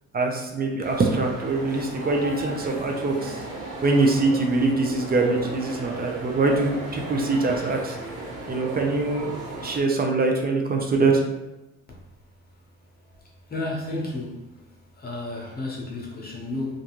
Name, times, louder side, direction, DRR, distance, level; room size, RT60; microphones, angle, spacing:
voice 1, 0.1-3.4 3.8-8.0 8.5-9.3 9.6-11.2, right 3 dB, 30° right, 1 dB, 0.5 m, -23 dB
sound 1, 0.8-9.8, right 2 dB, 85° right, 1.2 m, -35 dB
voice 2, 13.5-14.4 15.0-16.8, left 2 dB, 30° left, -3 dB, 0.9 m, -32 dB
2.5 x 2.2 x 2.9 m, 0.98 s
cardioid pair, 90°, 30 cm